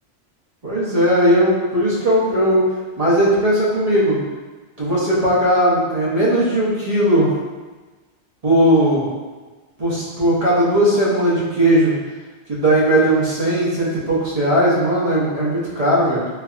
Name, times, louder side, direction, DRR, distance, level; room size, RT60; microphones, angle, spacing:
voice 1, 0.6-2.6 3.0-4.2 4.8-7.3 8.4-9.0 9.8-12.0 12.5-16.2, right 1 dB, 35° right, -7 dB, 1.0 m, -17 dB
3.3 x 3.3 x 2.4 m, 1.3 s
omnidirectional pair, 1.1 m